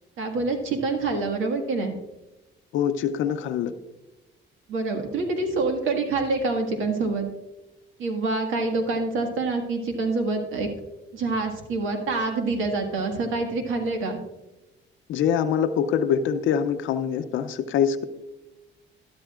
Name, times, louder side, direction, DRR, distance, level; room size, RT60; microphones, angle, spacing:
voice 1, 0.2-1.9 4.7-7.3 8.0-10.7 11.1-14.2, right 3 dB, 85° right, 4 dB, 1.7 m, -26 dB
voice 2, 2.7-3.7 15.1-18.0, left 8 dB, 80° left, 8 dB, 0.6 m, -24 dB
12.5 x 11.5 x 2.4 m, 1.0 s
cardioid pair, 90°, 20 cm